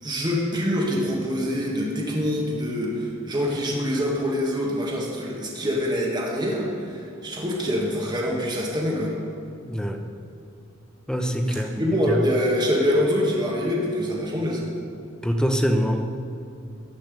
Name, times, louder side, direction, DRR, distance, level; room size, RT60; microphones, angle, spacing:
voice 1, 0.0-9.1 11.5-14.7, equal, 20° right, -2 dB, 1.7 m, -25 dB
voice 2, 9.7-10.0 11.1-11.7 15.2-16.0, equal, 5° left, 4 dB, 0.9 m, -23 dB
14.0 x 5.9 x 9.1 m, 2.6 s
head